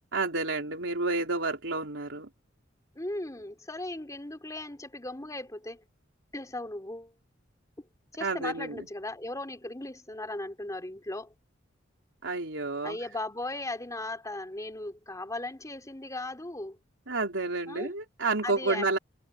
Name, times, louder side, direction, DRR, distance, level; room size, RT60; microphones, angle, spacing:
voice 1, 0.1-2.3 8.2-8.9 12.2-13.0 17.1-19.0, right 3 dB, 75° right, 3.6 m, -30 dB
voice 2, 3.0-5.8 6.3-7.1 8.1-11.3 12.8-16.8 17.7-17.9 18.4-19.0, left 2 dB, 20° left, 3.5 m, -37 dB
head